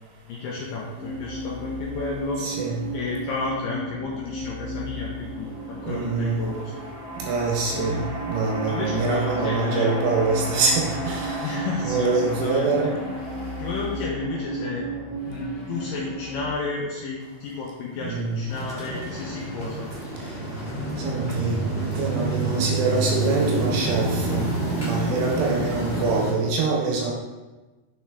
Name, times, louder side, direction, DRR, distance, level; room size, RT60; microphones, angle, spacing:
voice 1, 0.3-2.4 2.9-6.7 7.7-8.1 8.6-9.9 11.4-12.7 13.6-14.9 15.2-19.9, left 4 dB, 80° left, -3 dB, 2.0 m, -32 dB
sound 1, 1.0-16.5, right 2 dB, 25° right, 1.5 m, -34 dB
voice 2, 2.4-2.8 5.9-6.4 7.2-12.9 18.0-18.5 21.0-21.6 21.9-27.1, right 4 dB, 75° right, 0 dB, 2.5 m, -25 dB
sound 2, 5.5-15.1, equal, 45° right, 2.5 m, -37 dB
sound 3, 18.5-26.3, right 2 dB, 30° left, 1.0 m, -28 dB
6.2 x 5.5 x 3.4 m, 1.2 s
omnidirectional pair, 4.8 m